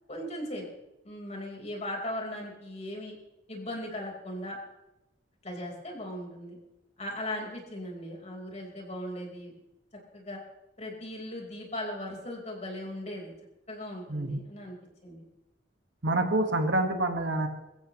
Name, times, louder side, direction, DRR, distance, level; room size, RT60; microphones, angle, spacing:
voice 1, 0.1-0.6 1.0-3.1 3.5-4.6 5.4-6.6 7.0-9.5 10.1-10.4 10.8-13.3 13.7-14.8 15.0-15.2, left 1 dB, 35° left, -1 dB, 4.6 m, -38 dB
voice 2, 14.1-14.4 16.0-17.5, right 2 dB, 70° right, 5 dB, 1.7 m, -27 dB
23.5 x 14.5 x 3.2 m, 0.96 s
head